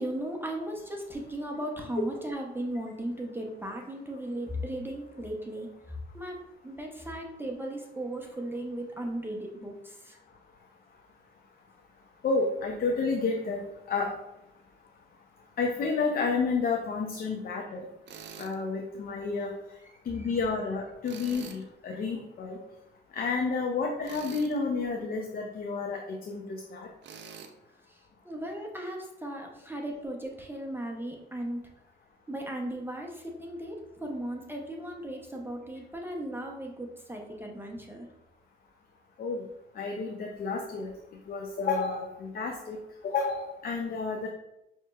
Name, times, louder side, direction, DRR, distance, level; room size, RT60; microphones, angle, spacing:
voice 1, 0.0-10.2 19.8-19.9 20.2-20.3 27.9-31.6 32.3-38.1, right 1 dB, 10° right, 1 dB, 0.6 m, -37 dB
voice 2, 12.2-13.6 13.9-14.1 15.6-17.8 18.4-19.5 20.1-22.6 23.1-26.4 26.7-26.9 39.2-39.4 39.8-40.9 41.3-42.8 43.0-44.3, left 4 dB, 50° left, 2 dB, 0.6 m, -30 dB
Tools, 18.1-18.5 21.0-21.6 24.0-24.6 27.0-27.5, right 6 dB, 65° right, 0.5 m, -45 dB
5.5 x 2.9 x 2.3 m, 0.90 s
cardioid pair, 90°, 20 cm